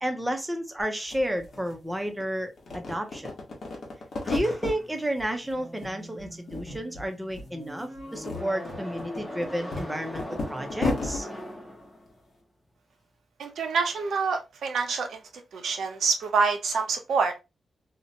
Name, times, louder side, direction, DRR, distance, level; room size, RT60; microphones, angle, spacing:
voice 1, 0.0-3.3 4.2-11.3, right 1 dB, 10° right, 0.6 m, -31 dB
sound 1, 0.8-0.9 1.1-2.2 2.6-4.8 5.2-5.9 6.2-7.1 7.3-7.5 8.0-11.2, left 3 dB, 60° left, 0.9 m, -33 dB
sound 2, 4.2-12.3, left 1 dB, 20° left, 0.9 m, -41 dB
voice 2, 13.4-15.2 15.5-17.4, right 5 dB, 90° right, 0.6 m, -26 dB
2.7 x 2.1 x 2.7 m
wide cardioid pair, 105°, 0 cm